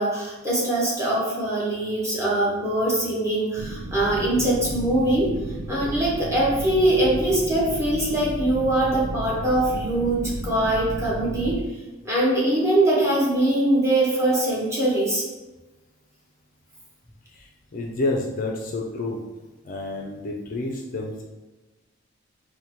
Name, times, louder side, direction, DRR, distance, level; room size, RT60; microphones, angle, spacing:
voice 1, 0.0-5.3 5.7-11.6 12.0-15.2, right 1 dB, 15° right, -6 dB, 1.0 m, -22 dB
sound 1, 3.6-11.6, right 1 dB, 90° right, 0.7 m, -33 dB
voice 2, 17.3-19.2 19.6-21.2, left 2 dB, 40° left, 0 dB, 0.4 m, -29 dB
3.9 x 2.2 x 4.3 m, 1.1 s
head